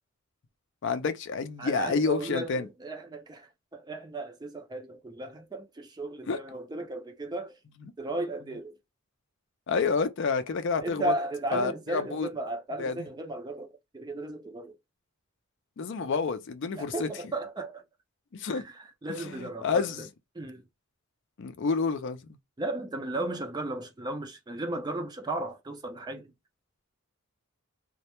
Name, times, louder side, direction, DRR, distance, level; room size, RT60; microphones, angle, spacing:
voice 1, 0.8-2.7 6.3-6.4 9.7-11.1 11.5-12.3 12.8-12.9 15.8-17.1 18.3-18.6 19.2-20.1 21.4-22.4, left 4 dB, 55° left, 0.4 m, -29 dB
voice 2, 1.6-7.6 8.0-8.8 10.8-14.8 16.8-17.8 18.5-20.1 20.3-20.6 22.6-26.3, right 2 dB, 20° right, 0.4 m, -35 dB
2.1 x 2.1 x 2.9 m
head